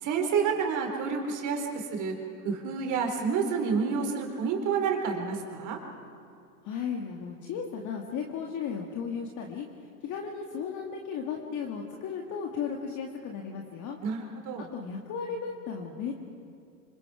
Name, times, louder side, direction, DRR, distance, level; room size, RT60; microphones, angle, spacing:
voice 1, 0.0-2.1 2.4-5.8 14.0-14.7, right 5 dB, 40° right, 3 dB, 4.1 m, -29 dB
voice 2, 6.6-9.7 10.0-14.0 14.7-16.1, left 6 dB, 40° left, 1 dB, 2.1 m, -35 dB
26.5 x 25.0 x 5.0 m, 2.5 s
hypercardioid pair, 110°, 45 cm